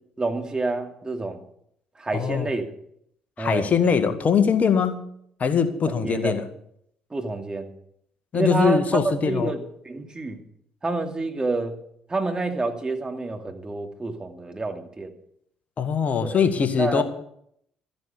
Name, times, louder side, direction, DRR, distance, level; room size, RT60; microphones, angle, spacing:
voice 1, 0.2-1.4 2.0-2.7 3.4-3.7 5.9-6.4 7.1-7.7 8.3-10.4 10.8-11.8 12.1-15.1 16.2-16.4 16.8-17.0, right 3 dB, 25° right, 4 dB, 2.5 m, -28 dB
voice 2, 2.1-2.5 3.4-5.0 5.4-6.4 8.3-9.5 15.8-17.0, left 6 dB, 45° left, 8 dB, 1.9 m, -22 dB
13.5 x 10.5 x 6.8 m, 0.71 s
hypercardioid pair, 50°, 3 cm